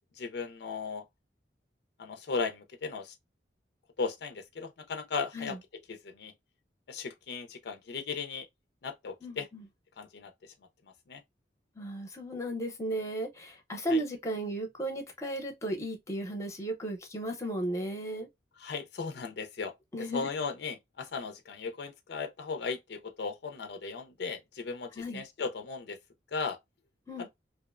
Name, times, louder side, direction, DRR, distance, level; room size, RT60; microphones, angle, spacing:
voice 1, 0.2-1.0 2.0-3.1 4.0-6.3 6.9-8.5 8.8-9.5 10.0-10.3 11.1-11.2 13.9-14.0 18.6-19.7 20.0-26.0 26.3-26.6 27.2-27.3, left 4 dB, 65° left, 0.4 m, -37 dB
voice 2, 9.2-9.6 11.8-18.3 19.9-20.3 25.0-25.2 27.1-27.3, right 1 dB, 20° left, 0.6 m, -35 dB
2.6 x 2.0 x 2.3 m
head